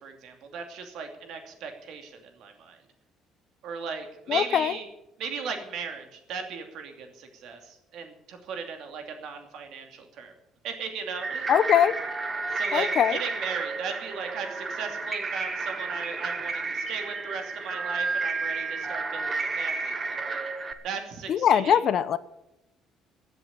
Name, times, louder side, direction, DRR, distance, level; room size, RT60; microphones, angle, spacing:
voice 1, 0.0-2.8 3.6-4.9 5.2-10.3 10.6-11.5 12.5-20.4 20.8-21.8, right 6 dB, 60° right, 5 dB, 2.7 m, -37 dB
voice 2, 4.3-4.7 11.5-12.0 12.7-13.2 21.3-22.2, left 9 dB, 45° left, 15 dB, 0.7 m, -22 dB
sound 1, 11.1-20.7, right 4 dB, 20° right, 1.0 m, -31 dB
15.0 x 8.0 x 8.8 m, 0.87 s
cardioid pair, 160°, 0 cm